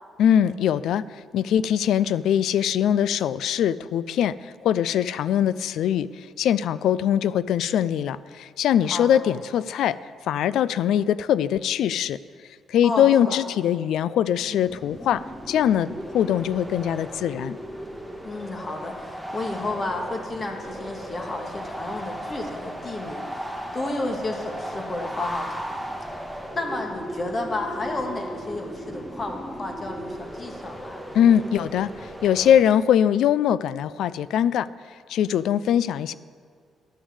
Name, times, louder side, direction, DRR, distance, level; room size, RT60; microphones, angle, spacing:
voice 1, 0.2-1.0 1.3-10.0 10.3-12.2 12.7-15.2 15.5-17.6 31.1-34.7 35.1-36.1, left 9 dB, 80° left, 17 dB, 0.3 m, -22 dB
voice 2, 12.8-13.4 16.2-16.5 18.2-23.2 23.7-25.8 26.5-31.0 35.7-35.8, left 2 dB, 35° left, 2 dB, 1.9 m, -32 dB
sound 1, 14.3-32.6, equal, 10° left, 2.0 m, -36 dB
11.5 x 6.2 x 8.1 m, 2.1 s
cardioid pair, 90°, 0 cm